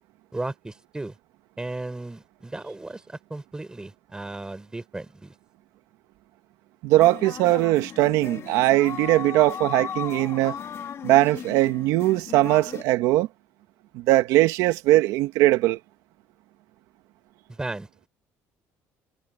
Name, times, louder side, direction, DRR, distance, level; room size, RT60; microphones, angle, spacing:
voice 1, 0.3-1.1 1.6-5.3 17.5-17.9, right 2 dB, 10° right, 4.8 m, -35 dB
voice 2, 6.8-10.6 11.0-13.3 13.9-15.8, right 17 dB, 85° right, 1.7 m, -20 dB
sound 1, 6.9-12.8, left 8 dB, 50° left, 2.0 m, -37 dB
cardioid pair, 100°, 6 cm